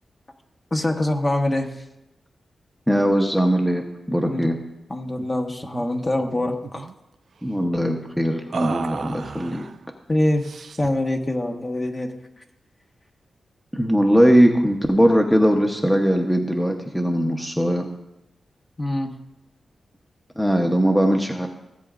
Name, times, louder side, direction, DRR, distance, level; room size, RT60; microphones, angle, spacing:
voice 1, 0.7-1.7 4.2-4.5 4.9-6.9 10.1-10.4 10.8-12.1 18.8-19.1, left 1 dB, 30° left, 2 dB, 1.3 m, -24 dB
voice 2, 2.9-4.6 7.4-9.6 13.7-17.9 20.4-21.5, equal, ahead, 2 dB, 0.9 m, -20 dB
sound 1, 5.2-5.4 5.6-5.9 6.2-6.9 8.5-9.8 10.4-11.0, right 5 dB, 70° right, 0.4 m, -33 dB
16.5 x 7.7 x 2.5 m, 0.89 s
cardioid pair, 60°, 0 cm